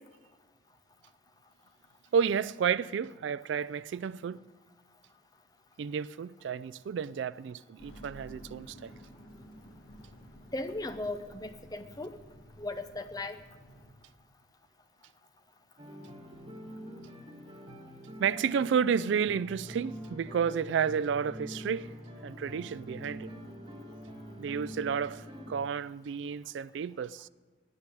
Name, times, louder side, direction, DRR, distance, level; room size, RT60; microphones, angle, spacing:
voice 1, 2.1-4.4 5.8-8.9 18.2-21.9 22.2-23.3 24.4-27.3, right 7 dB, 75° right, 0.3 m, -31 dB
sound 1, 7.8-13.9, equal, 55° left, 2.3 m, -52 dB
voice 2, 10.5-12.2 12.6-13.4, left 2 dB, 20° left, 0.7 m, -37 dB
sound 2, 15.8-25.5, equal, 30° right, 1.6 m, -45 dB
9.9 x 9.8 x 10.0 m
head